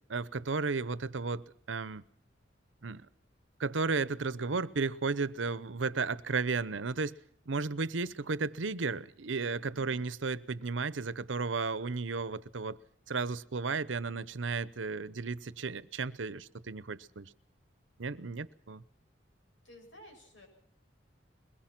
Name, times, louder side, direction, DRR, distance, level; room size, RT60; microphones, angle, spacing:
voice 1, 0.1-2.0 2.8-3.0 3.6-7.2 7.5-12.8 13.1-17.3 18.0-18.8, right 4 dB, 85° right, 0.8 m, -34 dB
voice 2, 9.7-10.1 19.6-20.5, equal, 80° left, 7.8 m, -54 dB
22.5 x 21.0 x 6.0 m
head